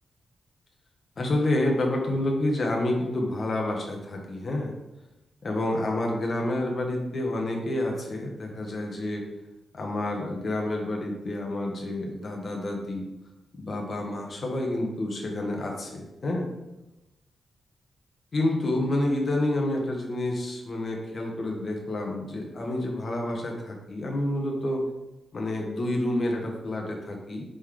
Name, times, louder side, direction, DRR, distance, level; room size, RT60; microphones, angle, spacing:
voice 1, 1.2-4.7 5.4-9.2 9.7-13.0 13.6-16.5 18.3-24.8 25.3-27.4, left 1 dB, 40° left, 0 dB, 1.3 m, -29 dB
5.3 x 4.1 x 4.9 m, 0.98 s
wide cardioid pair, 140°, 0 cm